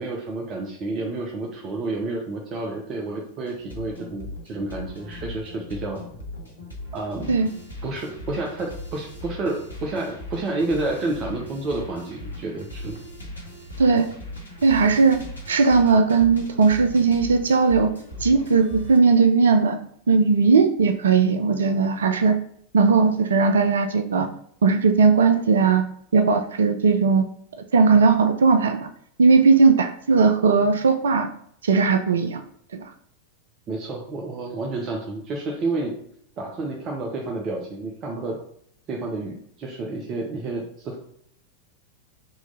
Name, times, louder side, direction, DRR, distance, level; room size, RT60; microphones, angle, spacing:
voice 1, 0.0-6.0 6.9-7.3 7.8-13.0 33.7-35.9 36.4-38.4 38.9-41.0, right 2 dB, 35° right, 0 dB, 0.8 m, -30 dB
sound 1, 3.5-19.0, left 1 dB, 80° left, 1.0 m, -38 dB
voice 2, 14.6-15.2 15.5-17.9 18.2-19.8 20.1-22.4 22.7-24.3 24.6-25.9 26.1-27.3 27.7-28.9 29.2-31.3 31.6-32.4 32.7-32.9, right 4 dB, 65° right, 7 dB, 0.4 m, -18 dB
3.9 x 3.0 x 3.9 m, 0.68 s
figure-of-eight pair, 90°, 0 cm